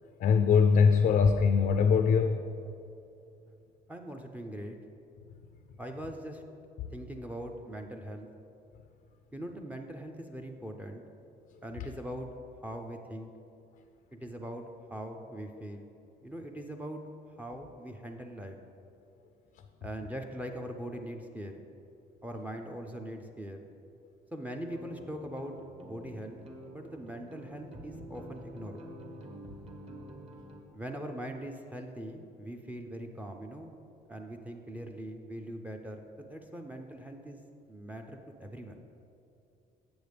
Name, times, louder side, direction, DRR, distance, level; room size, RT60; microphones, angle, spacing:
voice 1, 0.2-2.4 6.8-6.9, left 6 dB, 55° left, 7 dB, 0.4 m, -22 dB
voice 2, 3.9-4.8 5.8-6.4 6.9-8.3 9.3-11.0 11.6-12.3 12.6-13.3 14.1-14.6 14.9-15.9 16.2-17.0 17.4-18.6 19.8-21.6 22.2-23.6 24.3-25.5 25.8-26.4 26.7-28.8 30.7-33.7 34.1-37.4 37.7-38.8, right 1 dB, 10° right, 4 dB, 0.4 m, -41 dB
sound 1, 24.6-30.6, right 1 dB, 35° right, 1.1 m, -48 dB
8.0 x 6.8 x 3.4 m, 2.7 s
cardioid pair, 110°, 17 cm